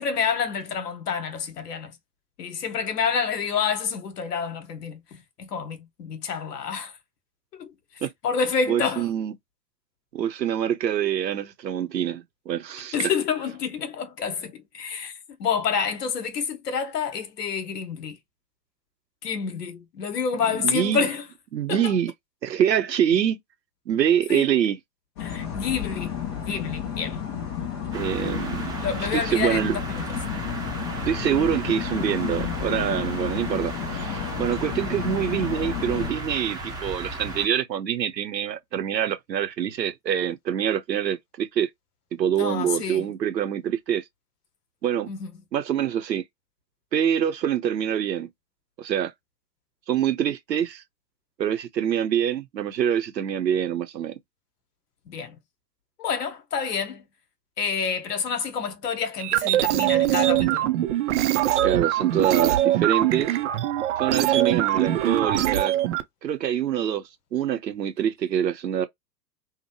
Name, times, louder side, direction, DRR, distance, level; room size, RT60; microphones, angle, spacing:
voice 1, 0.0-1.9 2.4-6.9 7.5-7.7 8.2-9.1 12.9-18.2 19.2-21.2 21.7-21.9 24.3-24.5 25.2-27.2 28.8-30.0 42.4-43.0 45.1-45.3 55.1-55.4 56.0-57.0 57.6-60.7, left 6 dB, 70° left, 1.1 m, -28 dB
voice 2, 8.7-9.3 10.1-13.1 20.5-21.0 21.5-22.1 22.4-23.4 23.9-24.8 27.9-28.7 29.0-29.8 31.0-41.7 42.1-44.0 44.8-45.1 45.5-46.2 46.9-48.3 48.8-49.1 49.9-50.8 51.4-54.1 61.6-63.4 64.0-65.7 66.2-67.0 67.3-68.9, right 9 dB, 85° right, 0.7 m, -25 dB
sound 1, 25.2-36.1, left 8 dB, 20° left, 0.3 m, -32 dB
sound 2, 27.9-37.5, right 1 dB, 10° right, 0.7 m, -35 dB
sound 3, 59.2-66.0, right 13 dB, 50° right, 0.5 m, -22 dB
2.7 x 2.1 x 2.8 m
figure-of-eight pair, 105°, 50 cm